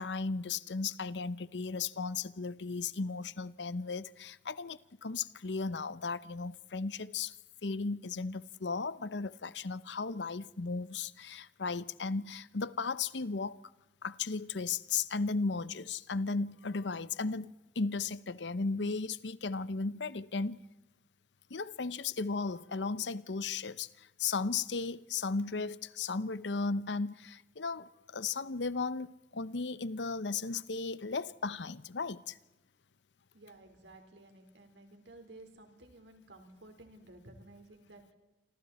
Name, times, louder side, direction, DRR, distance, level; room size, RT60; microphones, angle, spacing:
voice 1, 0.0-7.3 7.6-13.6 14.0-20.6 21.5-32.4, left 4 dB, 80° left, 0.8 m, -35 dB
voice 2, 33.3-38.1, right 2 dB, 80° right, 4.2 m, -54 dB
28.5 x 25.5 x 4.3 m
head